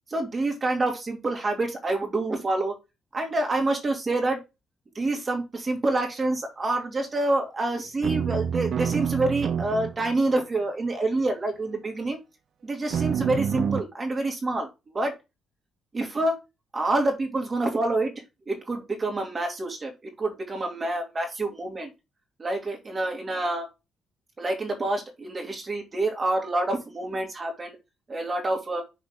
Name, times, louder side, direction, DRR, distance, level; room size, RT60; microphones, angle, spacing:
voice 1, 0.1-2.7 3.1-4.4 4.9-12.2 12.6-14.7 14.9-15.1 15.9-16.4 16.7-18.1 18.5-21.9 22.4-23.7 24.4-27.8 28.1-28.8, right 2 dB, 30° right, 2 dB, 2.4 m, -27 dB
sound 1, 8.0-10.4 12.9-13.8, right 8 dB, 60° right, 0.5 m, -27 dB
6.2 x 5.1 x 3.6 m, 0.24 s
cardioid pair, 90°, 0 cm